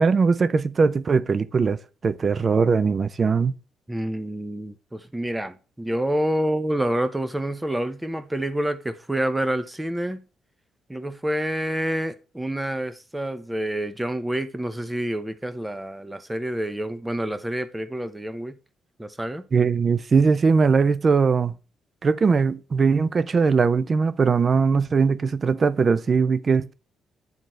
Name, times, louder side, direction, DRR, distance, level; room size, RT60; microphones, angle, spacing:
voice 1, 0.0-3.5 19.5-21.6 22.0-26.7, right 5 dB, 40° right, 0.5 m, -20 dB
voice 2, 3.9-10.2 10.9-18.6 19.0-19.4, right 1 dB, 10° right, 0.9 m, -28 dB
9.4 x 3.9 x 4.4 m
cardioid pair, 90°, 0 cm